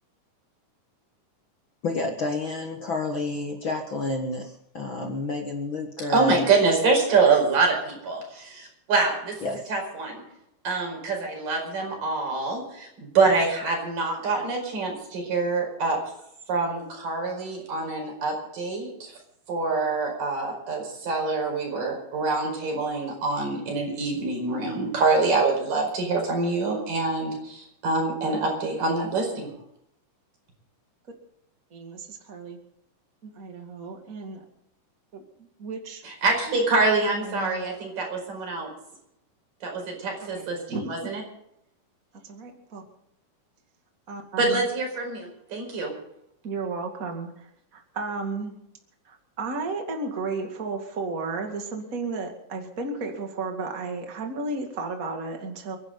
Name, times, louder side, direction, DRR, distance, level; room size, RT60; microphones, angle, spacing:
voice 1, 1.8-6.4 9.4-9.7, left 2 dB, 45° left, 2 dB, 1.8 m, -29 dB
voice 2, 6.1-9.4 9.7-10.3 10.6-16.0 16.5-19.1 19.5-29.5 36.0-38.7 39.6-41.2 44.4-45.9, right 3 dB, 85° right, 1 dB, 6.5 m, -25 dB
voice 3, 31.7-32.6 33.2-34.4 35.1-36.0 37.1-37.6 40.2-41.1 42.2-42.8 44.1-44.6 46.4-48.6 49.1-55.8, right 3 dB, 30° right, 3 dB, 2.3 m, -34 dB
30.0 x 11.0 x 3.9 m, 0.75 s
omnidirectional pair, 3.8 m